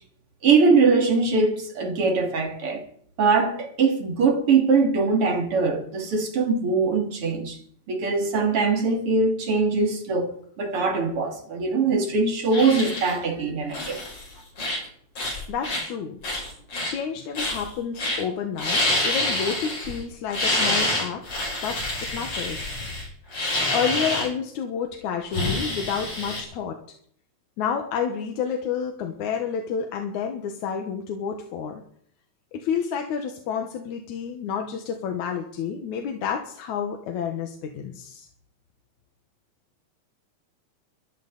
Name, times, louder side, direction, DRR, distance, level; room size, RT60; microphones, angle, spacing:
voice 1, 0.4-2.8 3.2-7.6 7.9-14.0, right 4 dB, 50° right, 3.5 m, -22 dB
sound 1, 12.5-13.2 13.7-14.2 14.6-14.9 15.2-15.8 16.2-16.9 17.3-17.7 18.0-18.2 18.5-20.0 20.3-24.3 25.3-26.4, left 1 dB, 55° left, 7.8 m, -27 dB
voice 2, 15.5-16.2 16.9-21.3 21.6-22.7 23.3-23.4 23.7-26.8 27.6-31.8 32.5-38.3, left 7 dB, 90° left, 2.8 m, -30 dB
22.0 x 14.0 x 4.1 m
omnidirectional pair, 3.3 m